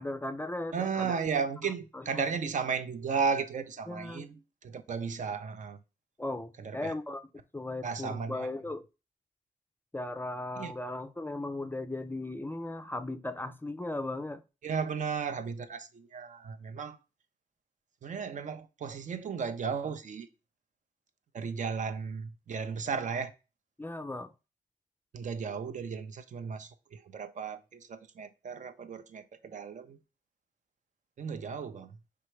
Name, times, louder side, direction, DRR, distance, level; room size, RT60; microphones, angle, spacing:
voice 1, 0.0-1.2 1.9-2.3 3.9-4.3 6.2-8.8 9.9-14.4 23.8-24.3, left 2 dB, 15° left, 0.4 m, -37 dB
voice 2, 0.7-5.8 6.6-6.9 7.8-8.4 10.6-10.7 14.6-17.0 18.0-20.3 21.3-23.3 25.1-30.0 31.2-32.0, right 5 dB, 60° right, 0.6 m, -35 dB
4.6 x 3.4 x 3.2 m
cardioid pair, 90°, 15 cm